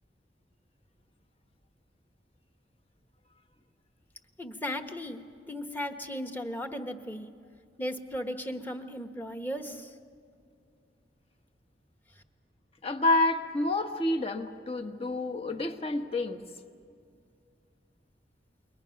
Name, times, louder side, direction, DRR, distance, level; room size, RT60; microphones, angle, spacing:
voice 1, 4.4-7.3 7.8-10.0, equal, 10° left, 6 dB, 1.2 m, -36 dB
voice 2, 12.8-16.4, left 2 dB, 35° left, 6 dB, 1.2 m, -28 dB
28.5 x 22.5 x 5.9 m, 2.3 s
head